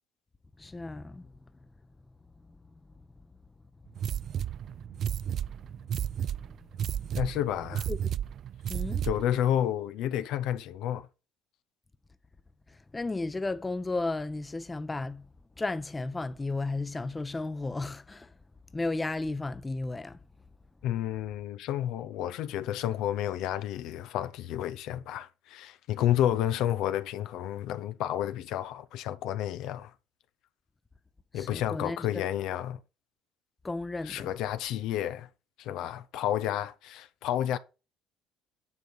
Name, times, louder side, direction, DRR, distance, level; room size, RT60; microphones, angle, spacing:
voice 1, 0.6-1.3 7.9-8.0 8.7-9.1 12.9-15.3 15.6-18.3 18.7-20.2 31.3-32.2 33.6-34.3, left 2 dB, 20° left, 0.7 m, -33 dB
sound 1, 4.0-9.4, right 9 dB, 55° right, 0.3 m, -33 dB
voice 2, 7.2-7.9 9.0-11.1 20.8-29.9 31.3-32.8 34.0-35.3 35.6-37.6, left 11 dB, 75° left, 0.6 m, -30 dB
9.7 x 3.8 x 6.5 m
supercardioid pair, 85°, 0 cm